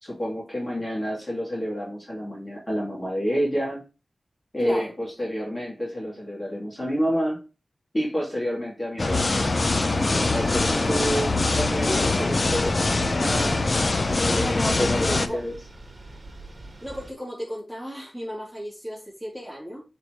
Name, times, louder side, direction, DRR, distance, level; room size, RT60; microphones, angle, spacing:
voice 1, 0.0-3.8 4.5-7.4 7.9-9.3 10.0-13.6 14.1-15.5, equal, 30° left, 3.2 m, -29 dB
voice 2, 4.6-4.9 10.6-10.7 14.3-15.4 16.8-19.8, equal, 5° left, 3.4 m, -34 dB
sound 1, 9.0-15.3, left 3 dB, 50° left, 0.6 m, -23 dB
sound 2, 10.4-17.1, right 2 dB, 40° right, 1.6 m, -42 dB
7.7 x 4.5 x 3.2 m
wide cardioid pair, 85°, 0 cm